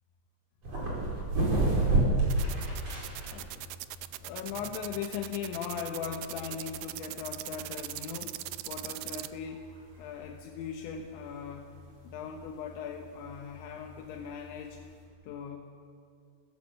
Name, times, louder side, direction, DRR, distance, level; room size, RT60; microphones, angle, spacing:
sound 1, 0.6-15.0, right 2 dB, 35° right, 5.9 m, -33 dB
sound 2, 2.3-9.3, right 17 dB, 80° right, 2.7 m, -40 dB
voice 1, 3.3-3.7 4.2-9.6 10.0-11.7 12.1-14.8 15.2-15.6, left 7 dB, 80° left, 2 dB, 3.5 m, -39 dB
24.0 x 17.0 x 7.6 m, 2.3 s
omnidirectional pair, 5.3 m